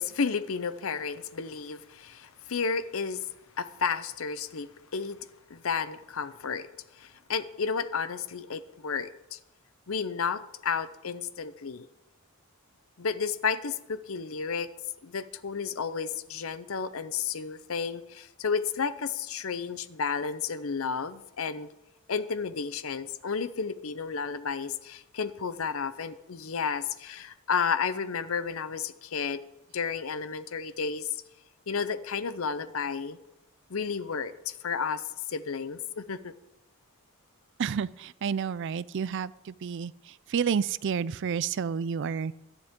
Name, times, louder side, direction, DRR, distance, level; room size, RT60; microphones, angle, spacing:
voice 1, 0.0-3.3 3.6-5.2 5.5-6.7 7.0-9.4 9.9-11.9 13.0-14.7 15.0-21.7 22.1-29.4 29.7-31.1 31.7-33.2 33.7-36.3, left 5 dB, 65° left, 13 dB, 0.7 m, -32 dB
voice 2, 37.6-42.3, right 6 dB, 55° right, 19 dB, 0.4 m, -30 dB
17.0 x 11.5 x 3.7 m, 0.91 s
head